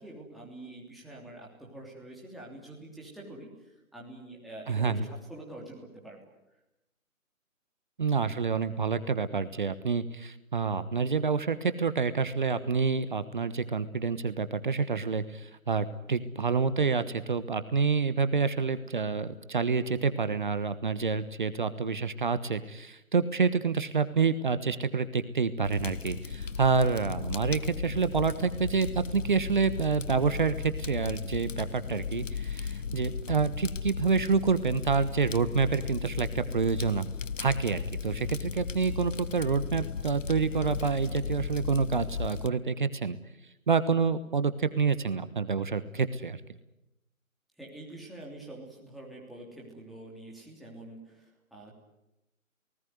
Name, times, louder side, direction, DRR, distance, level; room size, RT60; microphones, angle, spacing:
voice 1, 0.0-6.3 47.6-51.8, right 1 dB, ahead, -4 dB, 3.1 m, -46 dB
voice 2, 4.7-5.1 8.0-37.1 37.4-43.2 43.7-46.4, right 5 dB, 35° right, 13 dB, 1.3 m, -28 dB
Fire, 25.6-42.5, left 6 dB, 65° left, 1.2 m, -36 dB
29.5 x 19.0 x 9.5 m, 0.92 s
figure-of-eight pair, 155°, 41 cm